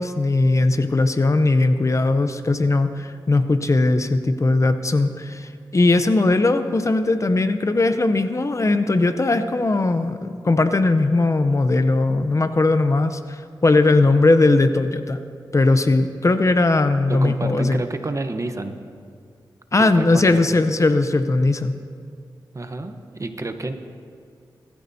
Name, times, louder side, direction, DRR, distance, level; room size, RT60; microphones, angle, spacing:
voice 1, 0.0-15.2 15.5-17.8 19.7-21.8, left 2 dB, 40° left, 10 dB, 0.7 m, -19 dB
voice 2, 17.1-18.8 19.8-20.5 22.5-23.7, right 2 dB, 40° right, 7 dB, 1.0 m, -29 dB
22.0 x 14.0 x 2.8 m, 2.2 s
cardioid pair, 65°, 8 cm